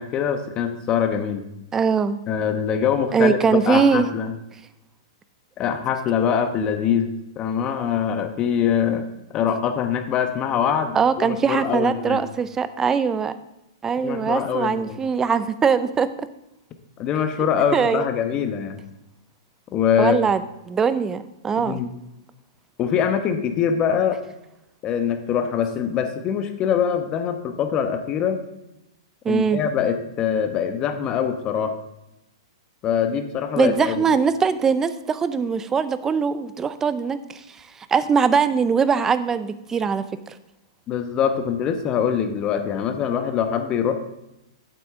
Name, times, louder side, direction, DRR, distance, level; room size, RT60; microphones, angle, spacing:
voice 1, 0.0-1.5 2.3-4.4 5.6-12.2 14.0-15.0 17.0-18.8 19.7-20.2 21.6-21.9 22.8-24.2 24.8-28.4 29.3-31.8 32.8-34.0 40.9-44.0, left 8 dB, 30° left, 8 dB, 1.0 m, -23 dB
voice 2, 1.7-2.2 3.1-4.1 10.9-13.3 13.8-16.1 17.7-18.1 20.0-20.4 20.7-21.8 29.2-29.6 33.6-37.4 37.9-40.0, right 6 dB, 15° right, 13 dB, 0.5 m, -21 dB
8.3 x 7.9 x 3.6 m, 0.90 s
hypercardioid pair, 125°, 3 cm